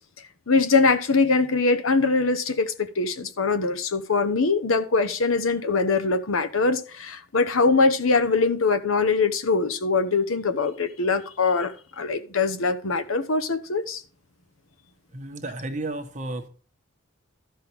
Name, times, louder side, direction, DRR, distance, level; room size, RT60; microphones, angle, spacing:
voice 1, 0.5-14.0, left 4 dB, 80° left, 0.9 m, -22 dB
voice 2, 15.1-16.5, right 2 dB, 35° right, 1.1 m, -32 dB
13.0 x 5.6 x 4.6 m
head